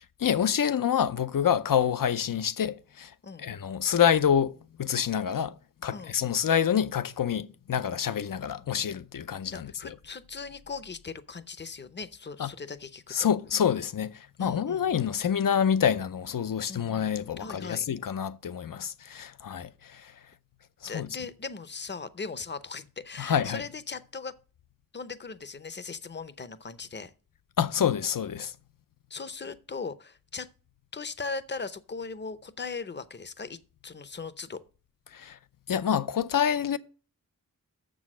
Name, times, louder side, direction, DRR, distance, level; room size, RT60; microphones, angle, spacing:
voice 1, 0.2-3.1 3.4-9.9 12.4-12.5 13.1-20.1 20.8-21.1 23.2-23.6 27.6-28.5 35.1-35.4 35.7-36.8, left 8 dB, 70° left, 0.6 m, -27 dB
voice 2, 9.5-13.3 14.4-14.9 16.7-16.9 17.4-17.9 20.9-24.3 24.9-27.1 29.1-30.5 30.9-33.6 33.8-34.6, left 4 dB, 30° left, 0.7 m, -39 dB
7.1 x 6.3 x 6.1 m
wide cardioid pair, 65°, 34 cm